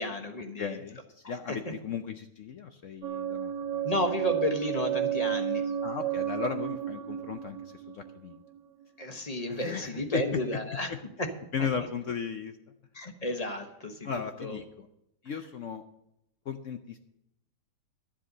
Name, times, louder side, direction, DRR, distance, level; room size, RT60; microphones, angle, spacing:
voice 1, 0.0-0.8 1.2-1.7 3.8-5.6 9.0-10.9 11.2-11.3 11.6-11.9 12.9-14.1 14.4-14.6, left 1 dB, 25° left, 5 dB, 1.0 m, -32 dB
voice 2, 0.6-3.9 5.8-8.4 9.5-10.4 10.9-11.0 11.5-12.6 14.0-14.9 15.2-15.8 16.5-17.0, left 6 dB, 70° left, 8 dB, 0.7 m, -36 dB
sound 1, 3.0-8.8, right 9 dB, 75° right, 1.2 m, -32 dB
11.5 x 7.6 x 6.5 m, 0.82 s
omnidirectional pair, 2.0 m